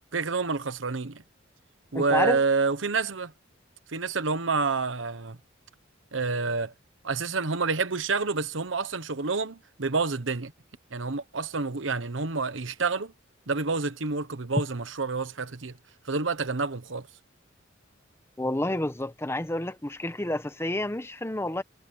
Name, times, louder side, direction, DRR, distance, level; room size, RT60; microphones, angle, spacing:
voice 1, 0.1-1.2 1.9-3.3 3.9-5.4 6.1-6.7 7.0-10.5 10.9-13.1 13.5-15.8 16.0-17.1, right 4 dB, 75° right, 1.1 m, -28 dB
voice 2, 1.9-2.4 18.4-21.6, left 1 dB, 15° left, 1.0 m, -29 dB
head